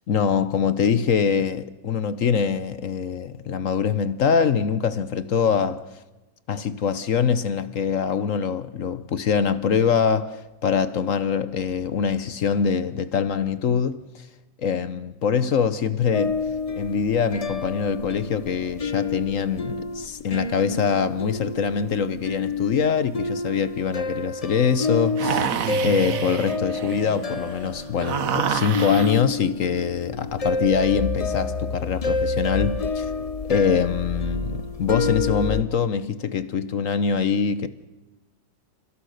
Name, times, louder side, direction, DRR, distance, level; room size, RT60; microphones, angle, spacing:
voice 1, 0.1-5.9 6.5-14.2 14.6-16.4 16.8-25.5 25.8-33.1 33.5-37.7, left 6 dB, 55° left, 1.0 m, -24 dB
sound 1, 16.1-35.6, left 4 dB, 40° left, 0.5 m, -29 dB
sound 2, 25.2-29.2, right 8 dB, 55° right, 1.3 m, -28 dB
29.0 x 16.0 x 6.5 m
omnidirectional pair, 2.0 m